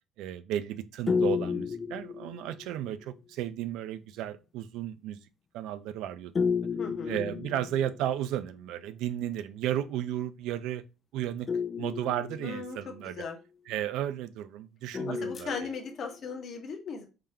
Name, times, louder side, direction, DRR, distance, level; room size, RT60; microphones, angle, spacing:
voice 1, 0.2-5.2 5.5-6.3 7.1-10.8 11.1-11.5 11.8-13.2 13.7-15.7, right 11 dB, 80° right, 0.4 m, -34 dB
sound 1, 1.1-2.8 6.4-8.2 11.5-13.0 14.9-16.1, left 5 dB, 35° left, 0.4 m, -32 dB
voice 2, 6.8-7.2 12.4-12.8 13.0-13.4 15.1-17.1, left 5 dB, 50° left, 1.0 m, -38 dB
3.6 x 3.5 x 2.7 m
cardioid pair, 95°, 0 cm